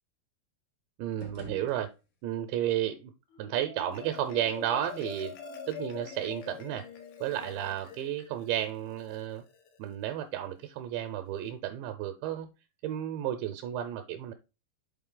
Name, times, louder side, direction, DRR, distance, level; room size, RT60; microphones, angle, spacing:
sound 1, 1.0-2.5, equal, 70° left, 1.4 m, -47 dB
voice 1, 1.0-1.9 2.2-3.1 3.4-5.3 5.7-6.9 7.2-9.4 9.8-12.5 12.8-14.3, right 11 dB, 80° right, 6 dB, 2.7 m, -32 dB
Marimba xylophone, 3.3-9.9, left 6 dB, 85° left, 3.4 m, -45 dB
7.9 x 4.0 x 3.7 m, 0.28 s
omnidirectional pair, 5.4 m